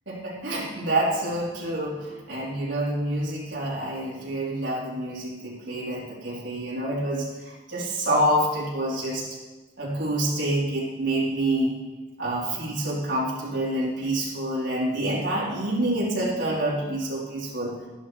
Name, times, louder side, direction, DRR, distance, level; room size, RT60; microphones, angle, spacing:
voice 1, 0.1-9.2 9.8-11.7 12.2-17.7, right 1 dB, 85° right, -6 dB, 3.8 m, -27 dB
12.5 x 11.0 x 4.7 m, 1.2 s
head